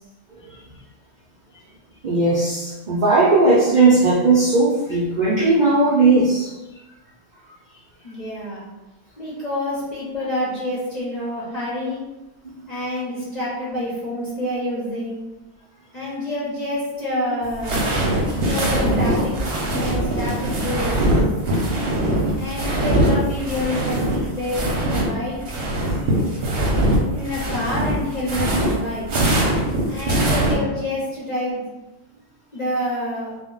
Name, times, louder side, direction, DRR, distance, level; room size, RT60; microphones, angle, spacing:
voice 1, 2.0-6.5, right 3 dB, 85° right, -5 dB, 0.4 m, -17 dB
voice 2, 8.0-8.6 9.2-12.0 12.7-15.2 15.9-17.7 18.3-20.9 22.3-25.4 27.1-29.1 29.9-31.6 32.5-33.4, left 1 dB, 45° left, -7 dB, 0.5 m, -28 dB
sound 1, 17.4-25.1 25.3-30.5, right 1 dB, 55° right, 0.7 m, -22 dB
2.1 x 2.1 x 3.7 m, 1.1 s
omnidirectional pair, 1.4 m